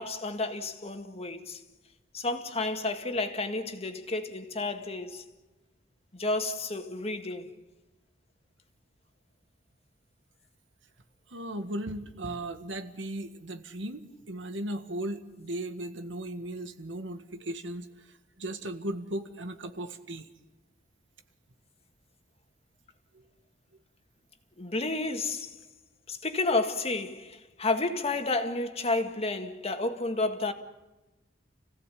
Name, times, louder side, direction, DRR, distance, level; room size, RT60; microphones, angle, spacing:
voice 1, 0.0-1.6 2.1-5.2 6.1-7.5 24.6-25.6 26.1-30.5, left 2 dB, 35° left, 1.9 m, -31 dB
voice 2, 11.3-18.1 18.4-20.3, right 1 dB, 85° right, 1.7 m, -37 dB
29.5 x 16.5 x 8.4 m
head